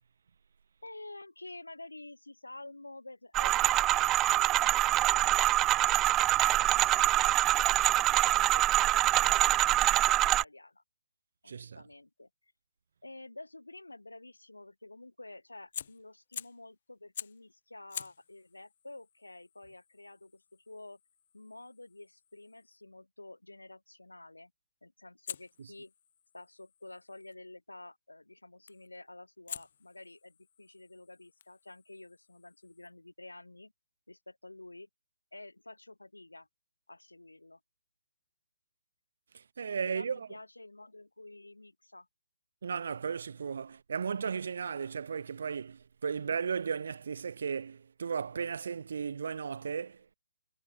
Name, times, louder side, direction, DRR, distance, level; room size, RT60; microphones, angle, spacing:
voice 1, 0.8-6.0 6.4-10.8 11.4-12.5 13.0-21.0 21.3-24.5 24.8-25.9 26.3-33.7 34.1-34.9 35.3-36.5 36.9-37.6 39.9-42.1 46.1-46.3, left 2 dB, 85° left, 7.6 m, -50 dB
sound 1, 3.3-10.4, right 15 dB, 15° right, 0.5 m, -25 dB
voice 2, 11.5-11.8 25.6-25.7 39.3-40.3 42.6-50.1, right 6 dB, 55° right, 1.0 m, -35 dB
Fire, 15.6-16.7 17.1-17.5 17.9-22.8 25.2-27.4 28.7-29.0 29.5-32.9, left 9 dB, 45° left, 3.4 m, -48 dB
figure-of-eight pair, 140°, 0 cm